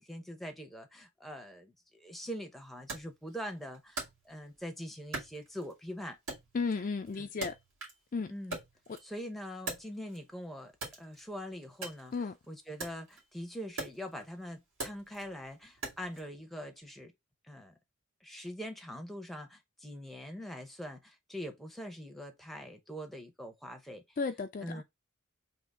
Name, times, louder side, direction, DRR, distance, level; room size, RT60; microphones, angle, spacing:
voice 1, 0.0-6.2 7.2-7.3 8.3-8.6 9.0-10.7 11.0-12.1 12.5-17.1 17.5-17.7 18.2-24.2 24.6-24.8, equal, ahead, 0.6 m, -43 dB
Wood, 2.9-4.7 5.1-5.9 6.3-8.1 8.4-10.3 10.7-16.3, right 2 dB, 75° right, 2.2 m, -43 dB
voice 2, 6.5-7.5 8.1-8.3 8.9-9.0 12.1-12.3 24.2-24.8, left 4 dB, 40° left, 0.3 m, -34 dB
3.6 x 2.9 x 4.0 m
head